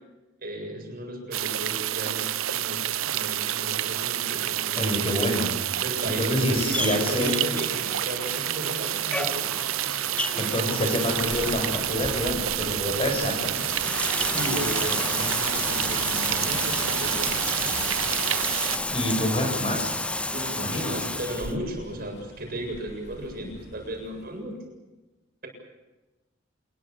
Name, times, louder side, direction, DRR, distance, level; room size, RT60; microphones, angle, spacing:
voice 1, 0.4-4.9 5.8-9.6 14.3-17.2 20.3-24.6, right 1 dB, 45° right, 2 dB, 7.5 m, -35 dB
sound 1, 1.3-18.8, right 12 dB, 90° right, 0.7 m, -28 dB
voice 2, 4.8-5.5 6.0-7.4 9.9-10.1 10.4-13.7 18.9-20.0 20.5-20.9, left 1 dB, 30° left, 3 dB, 7.0 m, -27 dB
Bathtub (filling or washing), 6.7-21.5, left 2 dB, 5° left, 0.8 m, -32 dB
Thunder, 10.9-24.5, equal, 55° left, 3.9 m, -41 dB
27.0 x 21.5 x 7.1 m, 1.1 s
head